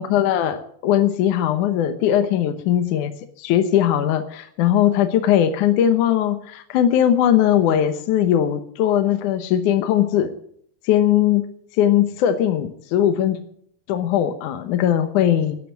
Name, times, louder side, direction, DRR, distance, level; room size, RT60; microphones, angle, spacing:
voice 1, 0.0-10.3 10.8-13.4 13.9-15.6, left 10 dB, 70° left, 9 dB, 2.0 m, -19 dB
12.0 x 10.5 x 8.9 m, 0.66 s
omnidirectional pair, 4.6 m